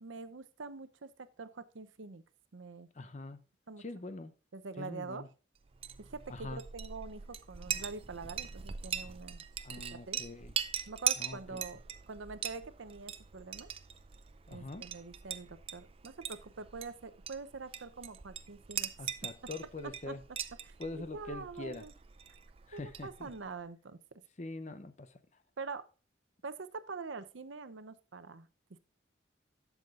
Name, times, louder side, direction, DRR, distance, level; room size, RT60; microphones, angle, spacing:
voice 1, 0.0-2.2 2.5-2.9 3.7-3.8 4.5-5.2 6.0-9.4 10.1-10.2 10.9-11.8 12.1-13.7 14.5-18.9 19.2-19.3 19.8-20.2 20.6-21.9 22.7-24.0 25.6-25.8 26.4-28.5, right 4 dB, 80° right, 0.7 m, -45 dB
voice 2, 2.9-3.4 3.8-4.3 4.8-5.3 6.3-6.6 9.6-10.5 11.2-11.6 14.5-14.8 19.0-20.2 20.8-21.8 22.7-23.3 24.4-25.2, left 2 dB, 35° left, 0.6 m, -43 dB
Chink clink, 5.6-23.5, right 9 dB, 30° right, 0.4 m, -41 dB
11.5 x 7.1 x 2.4 m
head